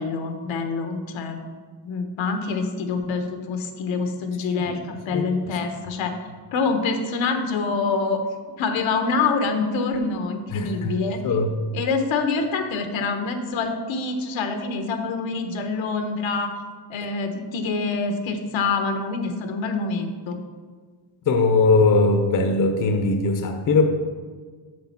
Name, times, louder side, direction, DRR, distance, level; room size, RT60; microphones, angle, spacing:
voice 1, 0.0-1.5 1.8-6.1 6.5-8.2 8.6-11.2 11.7-16.5 16.9-20.4, left 4 dB, 75° left, 6 dB, 1.1 m, -26 dB
voice 2, 5.1-5.6 10.5-10.9 11.2-11.5 21.3-23.8, left 3 dB, 40° left, 5 dB, 0.8 m, -20 dB
7.7 x 6.7 x 4.4 m, 1.5 s
cardioid pair, 145°, 47 cm